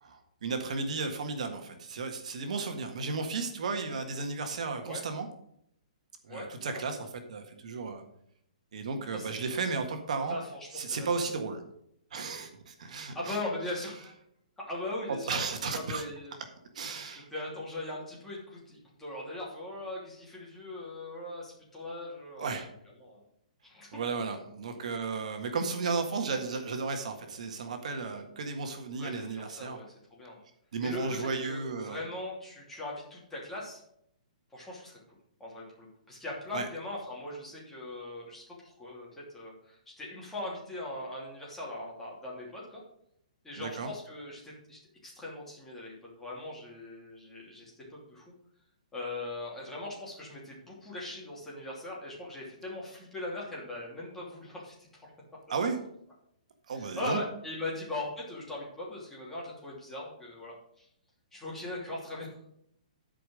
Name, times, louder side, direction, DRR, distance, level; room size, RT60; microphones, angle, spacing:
voice 1, 0.0-5.3 6.2-7.0 7.3-8.0 8.7-10.4 10.7-11.6 12.1-13.4 15.3-16.0 16.7-17.3 22.4-22.7 23.9-29.8 30.7-32.0 36.5-36.7 43.6-43.9 55.5-55.8 56.7-57.2, right 4 dB, 60° right, 5 dB, 1.6 m, -34 dB
voice 2, 6.3-6.8 9.1-9.6 10.3-11.3 13.1-14.1 14.6-15.4 15.9-16.3 17.1-22.6 23.0-23.2 23.6-24.2 29.0-30.4 30.8-33.8 34.5-42.8 43.4-48.2 48.9-55.1 56.7-60.9 61.3-62.4, left 2 dB, 5° left, -5 dB, 2.8 m, -40 dB
12.0 x 5.1 x 6.4 m, 0.73 s
hypercardioid pair, 170°, 4 cm